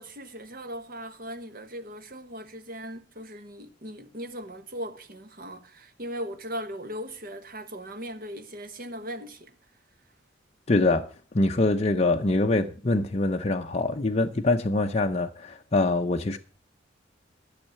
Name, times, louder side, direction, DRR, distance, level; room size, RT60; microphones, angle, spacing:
voice 1, 0.0-9.5, equal, 50° right, 1.3 m, -38 dB
voice 2, 10.7-16.4, left 2 dB, 35° left, 0.7 m, -24 dB
12.0 x 6.5 x 7.1 m
head